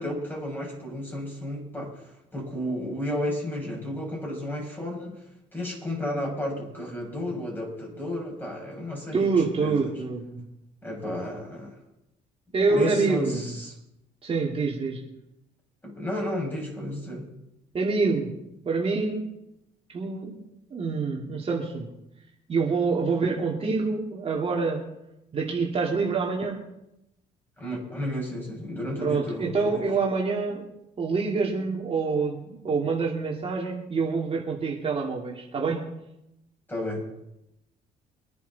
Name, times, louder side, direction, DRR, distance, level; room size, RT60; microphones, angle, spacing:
voice 1, 0.0-5.2 5.5-9.3 9.6-10.0 10.8-11.8 12.7-13.7 15.8-17.3 27.6-29.8 36.7-37.1, left 1 dB, 10° left, -1 dB, 6.7 m, -32 dB
voice 2, 9.1-10.4 12.5-13.5 14.2-15.0 17.7-18.3 18.6-19.2 19.9-20.3 20.7-21.9 22.5-24.8 25.3-26.6 29.0-30.7 31.0-35.9, right 4 dB, 35° right, -2 dB, 2.8 m, -26 dB
25.0 x 10.5 x 4.3 m, 0.87 s
cardioid pair, 110°, 17 cm